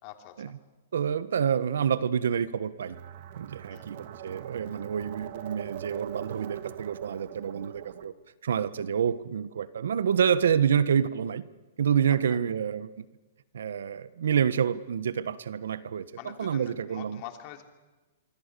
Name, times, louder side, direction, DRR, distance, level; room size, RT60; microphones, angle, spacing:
voice 1, 0.0-0.4 3.7-3.8 12.3-12.4 16.2-17.6, left 12 dB, 40° left, 5 dB, 3.1 m, -44 dB
voice 2, 0.9-3.0 3.3-8.1 8.4-11.4 11.8-13.0 13.5-17.2, right 8 dB, 80° right, 15 dB, 1.3 m, -28 dB
sound 1, 2.9-8.1, right 11 dB, 50° right, 1.8 m, -42 dB
25.5 x 25.0 x 6.9 m, 1.2 s
hypercardioid pair, 150°, 0 cm